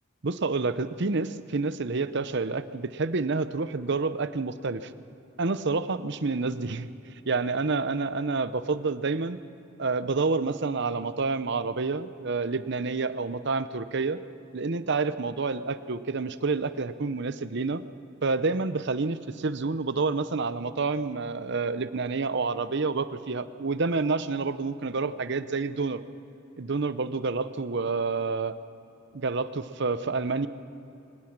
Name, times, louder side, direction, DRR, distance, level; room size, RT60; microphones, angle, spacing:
voice 1, 0.2-4.9 5.4-6.9 7.3-9.4 9.8-14.2 14.5-17.8 18.2-26.0 26.6-28.5 29.1-30.5, right 4 dB, 60° right, 13 dB, 0.8 m, -28 dB
23.5 x 18.5 x 6.0 m, 2.8 s
head